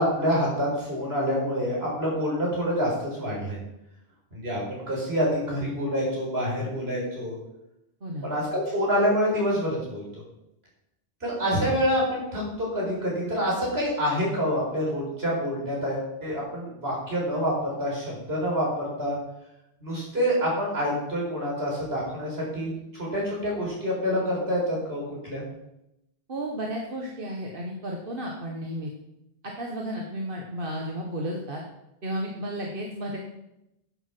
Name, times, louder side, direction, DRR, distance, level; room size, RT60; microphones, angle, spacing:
voice 1, 0.0-3.6 4.3-7.4 8.2-10.0 11.2-19.2 19.8-25.4, equal, 80° right, -4 dB, 5.1 m, -27 dB
voice 2, 8.0-8.3 26.3-28.9 29.4-31.6 32.0-33.2, equal, 60° right, 0 dB, 1.6 m, -33 dB
11.0 x 7.6 x 6.1 m, 0.86 s
omnidirectional pair, 1.0 m